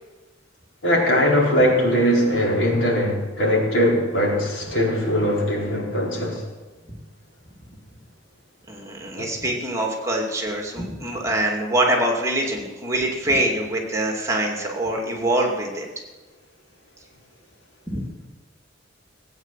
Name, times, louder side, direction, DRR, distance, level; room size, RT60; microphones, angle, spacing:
voice 1, 0.8-6.4 9.2-9.3, equal, 70° left, -3 dB, 4.6 m, -20 dB
voice 2, 8.7-15.9 17.9-18.1, right 1 dB, 15° right, 0 dB, 2.4 m, -24 dB
18.5 x 9.1 x 7.5 m, 1.2 s
head